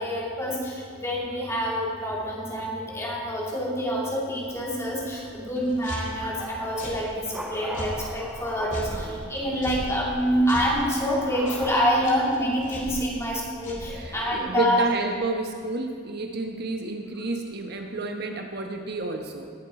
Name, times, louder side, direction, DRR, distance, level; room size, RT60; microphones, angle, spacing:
voice 1, 0.0-14.8, equal, 15° left, -4 dB, 2.6 m, -27 dB
sound 1, 4.5-12.0, equal, 5° right, 1.2 m, -39 dB
sound 2, 5.6-14.5, equal, 40° left, 2.7 m, -39 dB
voice 2, 8.9-9.3 13.9-19.5, right 2 dB, 55° right, 4 dB, 1.0 m, -30 dB
18.5 x 7.4 x 4.8 m, 2.3 s
head